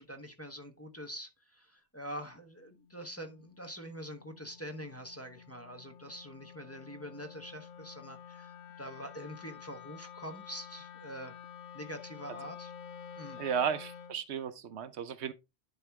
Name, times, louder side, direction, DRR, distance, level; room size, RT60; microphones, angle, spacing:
voice 1, 0.0-11.3 11.7-12.7 13.2-13.4, equal, 15° left, 1.0 m, -45 dB
Wind instrument woodwind instrument, 2.6-14.2, left 8 dB, 60° left, 1.1 m, -50 dB
voice 2, 13.4-15.3, right 7 dB, 85° right, 1.0 m, -34 dB
10.5 x 4.3 x 3.5 m
omnidirectional pair, 1.1 m